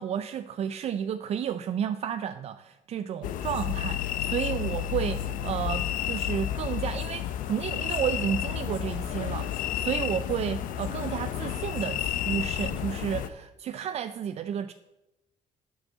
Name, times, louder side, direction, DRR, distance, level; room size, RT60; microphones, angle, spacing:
voice 1, 0.0-14.7, right 9 dB, 50° right, 10 dB, 0.5 m, -32 dB
sound 1, 3.2-13.3, left 11 dB, 85° left, 0.7 m, -31 dB
7.8 x 6.5 x 7.4 m, 0.97 s
cardioid pair, 115°, 14 cm